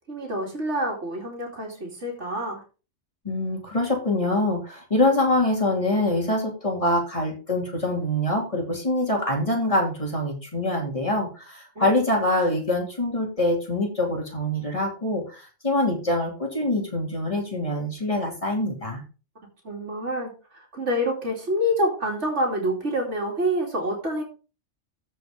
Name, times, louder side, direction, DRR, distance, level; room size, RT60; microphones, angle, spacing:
voice 1, 0.1-2.6 11.8-12.1 19.6-24.2, equal, 65° right, 0 dB, 3.1 m, -27 dB
voice 2, 3.2-19.0, left 1 dB, 25° left, 0 dB, 2.9 m, -24 dB
14.5 x 5.7 x 3.7 m, 0.33 s
omnidirectional pair, 1.3 m